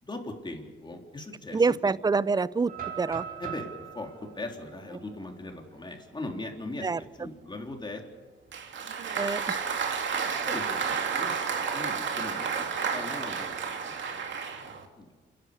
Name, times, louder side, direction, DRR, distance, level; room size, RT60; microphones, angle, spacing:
voice 1, 0.0-1.9 3.4-8.0 10.5-14.2 14.6-15.1, left 2 dB, 25° left, 2 dB, 3.6 m, -40 dB
voice 2, 1.5-2.7 3.0-3.2 6.8-7.0 9.2-9.6, right 4 dB, 20° right, 19 dB, 0.6 m, -26 dB
sound 1, 2.7-6.6 7.0-7.1 7.6-7.9 9.2-10.1, right 8 dB, 50° right, 4.8 m, -42 dB
Applause, 8.5-14.9, right 6 dB, 70° right, 2.5 m, -31 dB
28.0 x 11.0 x 9.9 m, 1.4 s
cardioid pair, 90°, 20 cm